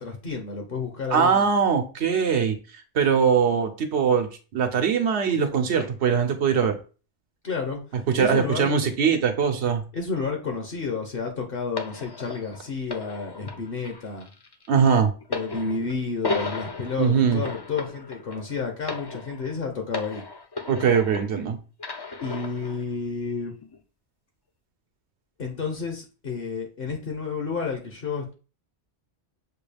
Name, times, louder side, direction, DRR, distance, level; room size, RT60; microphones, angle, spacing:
voice 1, 0.0-1.5 7.4-7.8 8.2-8.8 9.9-14.3 15.3-20.2 22.2-23.5 25.4-28.3, left 4 dB, 60° left, 3 dB, 1.0 m, -31 dB
voice 2, 1.1-2.5 2.9-6.8 8.1-9.8 14.7-15.1 17.0-17.4 20.7-21.6, right 6 dB, 85° right, 6 dB, 1.1 m, -21 dB
sound 1, 11.8-21.4 21.8-22.8 23.6-23.8, left 3 dB, 40° left, 0.4 m, -35 dB
6.6 x 2.3 x 3.3 m, 0.34 s
omnidirectional pair, 1.1 m